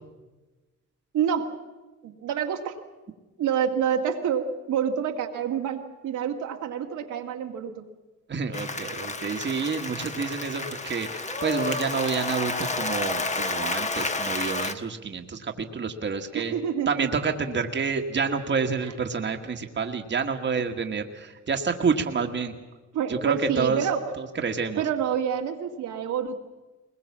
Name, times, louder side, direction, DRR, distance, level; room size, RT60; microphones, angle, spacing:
voice 1, 1.1-1.5 2.0-2.8 3.4-7.9 16.3-17.1 18.8-18.9 22.9-24.1 24.8-26.4, right 8 dB, 80° right, 2 dB, 2.0 m, -28 dB
voice 2, 8.3-16.5 16.9-22.5 23.1-23.9 24.2-24.8, right 5 dB, 40° right, 4 dB, 1.6 m, -28 dB
Applause, 8.5-14.7, left 3 dB, 25° left, 1.4 m, -30 dB
21.0 x 21.0 x 7.3 m, 1.2 s
cardioid pair, 90°, 30 cm